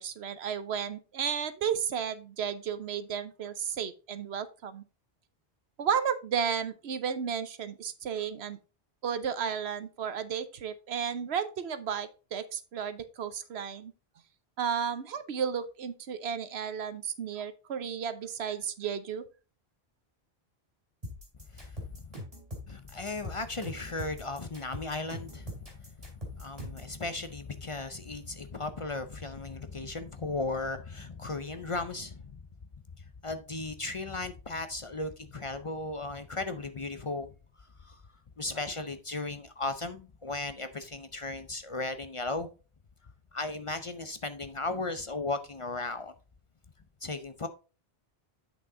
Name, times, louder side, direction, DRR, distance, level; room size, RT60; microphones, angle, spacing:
voice 1, 0.0-4.8 5.8-8.6 9.0-13.9 14.6-19.3, right 7 dB, 90° right, 1.1 m, -33 dB
sound 1, 21.0-26.9, left 1 dB, 35° right, 3.7 m, -42 dB
voice 2, 21.5-22.1 22.7-32.3 33.2-37.3 37.8-38.0 38.4-42.5 43.3-46.1 47.0-47.5, left 3 dB, 40° left, 0.6 m, -36 dB
8.2 x 6.2 x 3.8 m
omnidirectional pair, 1.0 m